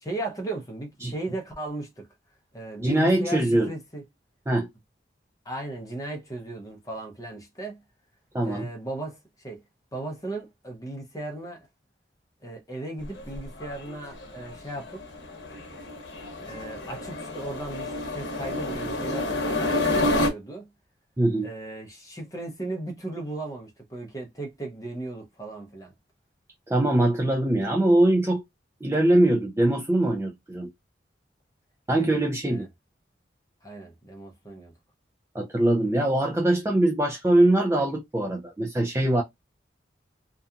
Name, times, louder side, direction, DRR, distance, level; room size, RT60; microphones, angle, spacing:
voice 1, 0.0-2.1 2.5-4.0 5.4-7.8 8.4-9.2 9.4-9.6 9.9-11.7 12.4-15.2 16.4-20.7 21.4-25.9 31.9-32.2 32.5-32.7 33.6-34.7, right 2 dB, 20° left, 0.7 m, -36 dB
voice 2, 2.8-3.7 4.5-4.7 8.3-8.7 21.2-21.5 26.7-28.4 28.8-30.7 31.9-32.7 35.3-39.2, right 1 dB, 15° right, 0.3 m, -22 dB
sound 1, 13.0-20.3, left 2 dB, 85° left, 0.8 m, -29 dB
2.7 x 2.3 x 2.3 m
head